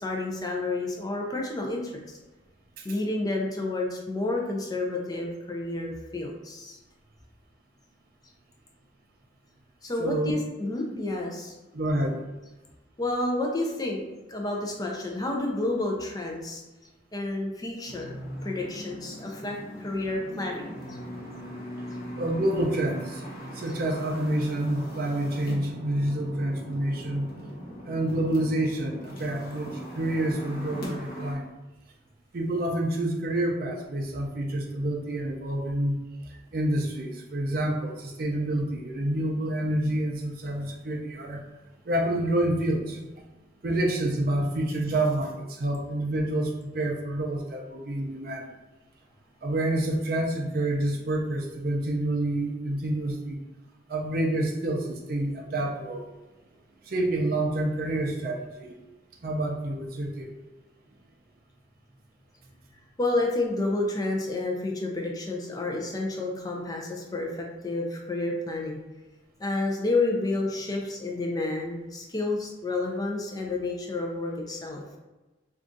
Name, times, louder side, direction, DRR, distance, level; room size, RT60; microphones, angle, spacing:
voice 1, 0.0-1.9 2.8-6.8 9.8-11.5 13.0-14.0 14.3-16.6 17.1-20.6 20.9-21.0 63.0-68.8 69.4-74.8, left 2 dB, 20° left, 0 dB, 0.4 m, -30 dB
voice 2, 10.0-10.3 11.7-12.2 22.2-23.2 23.5-27.3 27.8-31.5 32.3-36.0 36.5-41.4 41.8-43.0 43.6-48.5 49.4-53.4 53.9-56.0 56.9-58.8 59.2-60.3, right 1 dB, 50° right, 1 dB, 0.5 m, -28 dB
sound 1, 17.9-31.3, equal, 50° left, 0.7 m, -40 dB
2.5 x 2.3 x 3.8 m, 1.1 s
head